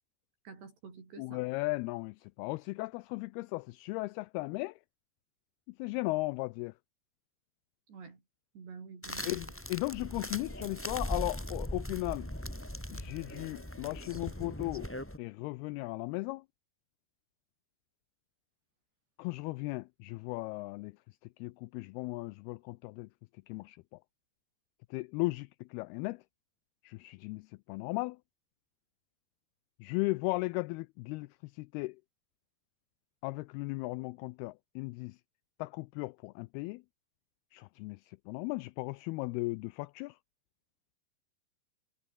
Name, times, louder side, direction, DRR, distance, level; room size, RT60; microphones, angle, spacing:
voice 1, 0.4-1.5 7.9-8.2 8.5-9.4, right 5 dB, 75° right, 8.0 m, -49 dB
voice 2, 1.2-4.7 5.8-6.7 9.3-12.3 12.9-14.9 15.2-16.4 19.2-20.9 21.4-23.1 23.5-23.8 24.9-26.2 26.8-28.2 29.8-32.0 33.2-35.2 35.6-36.8 37.5-40.1, left 23 dB, 85° left, 2.3 m, -36 dB
sound 1, 9.0-15.2, equal, 5° left, 3.1 m, -39 dB
omnidirectional pair, 4.9 m